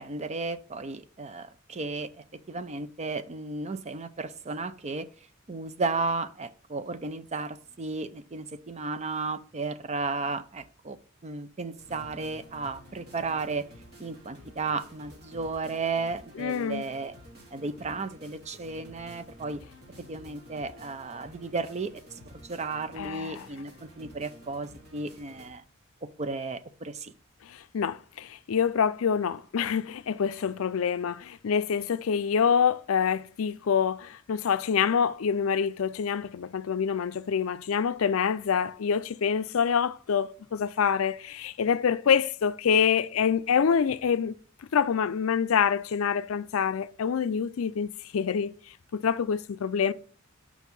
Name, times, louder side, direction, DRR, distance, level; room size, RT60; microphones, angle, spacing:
voice 1, 0.0-5.1 5.5-13.7 14.0-17.1 17.5-19.6 20.0-21.9 22.3-25.6 26.0-27.1, right 3 dB, 30° right, 0.5 m, -34 dB
sound 1, 11.8-25.5, equal, 50° right, 3.2 m, -51 dB
voice 2, 16.4-16.8 23.0-23.5 27.4-44.4 44.7-48.5 48.9-49.9, left 7 dB, 75° left, 0.4 m, -26 dB
5.8 x 4.6 x 5.3 m
head